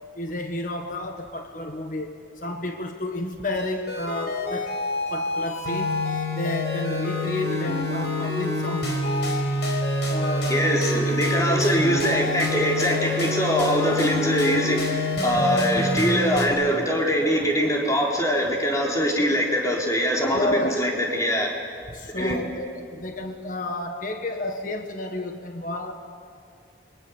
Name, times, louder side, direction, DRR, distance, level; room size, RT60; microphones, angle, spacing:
voice 1, 0.1-4.7 5.1-6.0 6.3-9.0 10.1-10.8 20.3-20.8 21.9-25.9, left 1 dB, 45° left, 5 dB, 1.5 m, -31 dB
sound 1, 3.5-16.5, left 1 dB, 70° left, 5.1 m, -26 dB
voice 2, 10.5-21.5 22.2-22.4, equal, 20° left, -2 dB, 3.8 m, -23 dB
29.5 x 23.5 x 7.2 m, 2.5 s
head